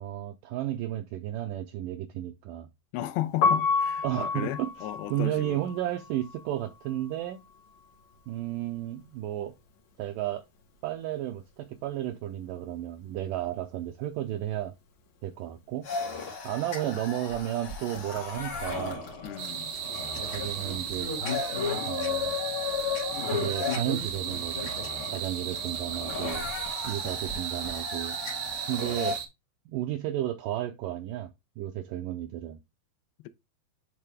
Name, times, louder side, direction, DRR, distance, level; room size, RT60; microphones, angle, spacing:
voice 1, 0.0-2.7 4.0-7.4 8.3-9.5 10.0-10.4 10.8-14.7 15.2-15.9 16.4-19.1 20.3-21.1 21.9-22.3 23.3-24.7 25.1-26.5 26.9-28.2 28.7-29.2 29.7-31.3 31.6-32.6, right 13 dB, 85° right, 1.9 m, -33 dB
voice 2, 2.9-5.6 19.2-19.7, left 13 dB, 85° left, 2.5 m, -34 dB
Piano, 3.3-9.2 9.5-11.1 11.3-17.8, left 5 dB, 55° left, 2.3 m, -32 dB
sound 1, 15.8-29.2, left 5 dB, 40° left, 2.4 m, -35 dB
sound 2, 19.4-29.3, right 9 dB, 70° right, 3.1 m, -35 dB
10.5 x 3.6 x 3.4 m
omnidirectional pair, 4.5 m